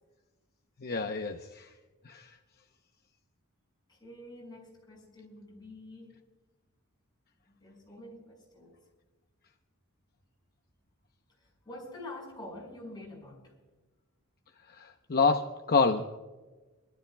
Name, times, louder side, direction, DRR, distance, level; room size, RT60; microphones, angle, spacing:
voice 1, 0.8-1.7 2.0-2.3 14.7-16.2, left 4 dB, 45° left, 5 dB, 0.8 m, -28 dB
voice 2, 3.9-6.2 7.5-8.8 11.4-13.5, left 1 dB, 20° left, -2 dB, 5.7 m, -47 dB
29.0 x 12.5 x 2.3 m, 1.2 s
head